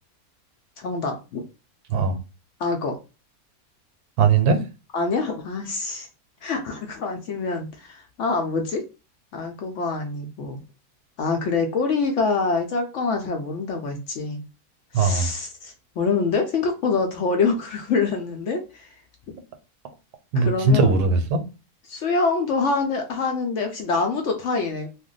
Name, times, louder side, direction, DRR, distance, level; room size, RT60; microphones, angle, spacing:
voice 1, 0.8-1.4 2.6-3.0 4.9-6.1 6.4-8.8 9.3-10.6 11.2-14.4 14.9-18.9 20.4-20.9 21.9-24.9, left 4 dB, 65° left, 0.8 m, -25 dB
voice 2, 4.2-4.6 14.9-15.3 20.3-21.4, right 4 dB, 90° right, 1.1 m, -19 dB
2.5 x 2.1 x 3.8 m
omnidirectional pair, 1.6 m